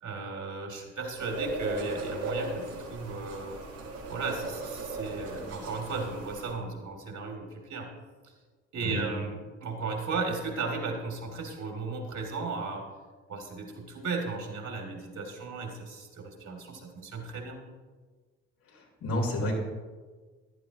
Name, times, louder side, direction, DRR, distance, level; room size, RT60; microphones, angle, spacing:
voice 1, 0.0-3.6 4.1-7.9 8.2-8.3 8.7-12.9 13.3-17.6, right 4 dB, 55° right, 2 dB, 2.7 m, -35 dB
sound 1, 1.2-6.5, right 2 dB, 90° right, 3.0 m, -37 dB
voice 2, 18.6-19.5, left 1 dB, 70° left, -2 dB, 3.5 m, -31 dB
14.0 x 11.5 x 3.0 m, 1.4 s
hypercardioid pair, 60°, 36 cm